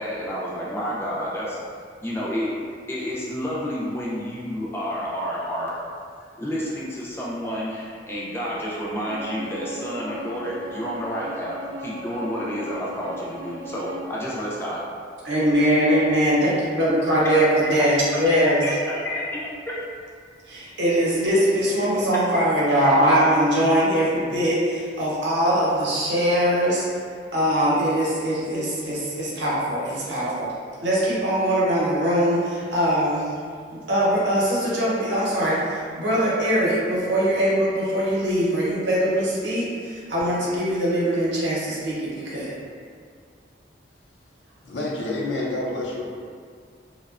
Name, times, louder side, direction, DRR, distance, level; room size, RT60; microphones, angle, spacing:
voice 1, 0.0-1.6 2.0-2.5 2.9-5.8 6.4-14.8 16.9-17.4 18.1-19.4 22.8-23.3, equal, 15° left, -6 dB, 0.3 m, -30 dB
Bowed string instrument, 9.0-14.1, right 1 dB, 40° right, 0.5 m, -37 dB
voice 2, 15.2-18.6 20.5-26.9 27.3-30.5 30.8-33.3 33.7-42.6, equal, 75° right, -7 dB, 0.7 m, -22 dB
voice 3, 44.6-46.0, left 2 dB, 75° left, -4 dB, 0.5 m, -28 dB
2.7 x 2.1 x 2.4 m, 2.1 s
head